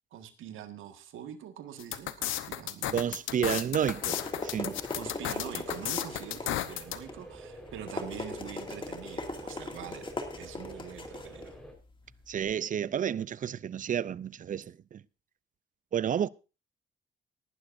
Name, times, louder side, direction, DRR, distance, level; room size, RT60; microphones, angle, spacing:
voice 1, 0.1-3.2 5.0-11.5, right 10 dB, 80° right, 1.7 m, -44 dB
sound 1, 1.8-7.0, left 13 dB, 85° left, 1.0 m, -34 dB
voice 2, 2.9-4.8 12.3-15.0 15.9-16.3, right 9 dB, 40° right, 0.5 m, -31 dB
sound 2, 3.8-12.5, left 2 dB, 25° left, 2.3 m, -40 dB
sound 3, 3.9-11.7, right 1 dB, 5° left, 4.4 m, -49 dB
18.5 x 11.5 x 2.6 m
cardioid pair, 90°, 20 cm